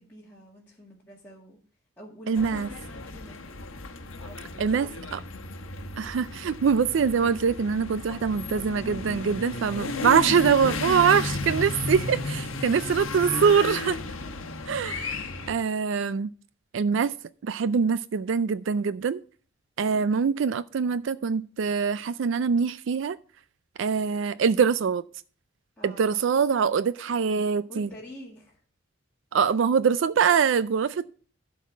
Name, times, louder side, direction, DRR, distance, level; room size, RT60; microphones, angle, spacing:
voice 1, 0.0-1.6 2.0-3.6 4.2-4.9 11.3-11.4 14.3-14.4 19.9-20.1 25.8-26.2 27.7-28.6, left 1 dB, 10° left, 1.8 m, -47 dB
voice 2, 2.3-2.7 4.6-5.2 6.0-14.0 14.7-16.3 16.7-17.1 17.4-19.2 19.8-23.2 23.8-25.0 25.8-27.9 29.3-31.1, right 6 dB, 65° right, 0.4 m, -24 dB
sound 1, 2.4-15.5, left 2 dB, 80° left, 1.1 m, -34 dB
12.0 x 4.0 x 7.3 m
head